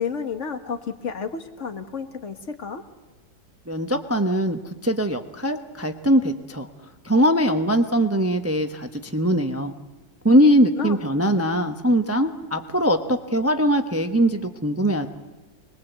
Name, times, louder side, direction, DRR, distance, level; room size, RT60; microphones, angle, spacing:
voice 1, 0.0-2.8 10.8-11.0, left 6 dB, 50° left, 7 dB, 1.7 m, -31 dB
voice 2, 3.7-6.7 7.0-9.7 10.2-15.1, equal, 10° right, 6 dB, 0.8 m, -21 dB
26.0 x 21.5 x 8.1 m, 1.3 s
omnidirectional pair, 1.7 m